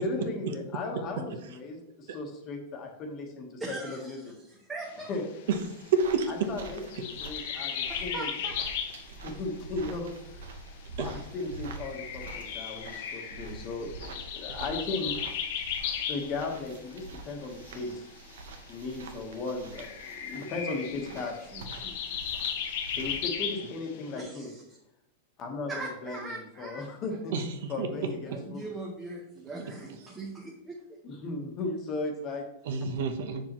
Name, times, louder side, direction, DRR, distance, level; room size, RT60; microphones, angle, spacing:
voice 1, 0.0-4.3 5.1-5.2 6.3-8.3 9.2-10.1 11.0-15.2 16.1-18.1 18.7-21.3 22.9-24.5 25.4-27.3 27.7-28.7 31.0-32.5 32.8-32.9, left 3 dB, 25° left, 2 dB, 1.2 m, -36 dB
voice 2, 3.6-5.1 7.9-8.6 17.7-18.0 21.1-22.0 24.2-24.6 25.7-26.9 28.2-31.0, right 3 dB, 10° right, -2 dB, 0.8 m, -41 dB
sound 1, 4.9-24.2, left 8 dB, 45° left, 0.7 m, -37 dB
sound 2, 5.5-23.4, right 3 dB, 85° right, 1.1 m, -46 dB
voice 3, 5.9-6.3 11.0-11.1 27.3-28.4 32.7-33.4, right 4 dB, 60° right, 6 dB, 0.9 m, -29 dB
7.4 x 6.5 x 3.0 m, 0.80 s
supercardioid pair, 175°, 0 cm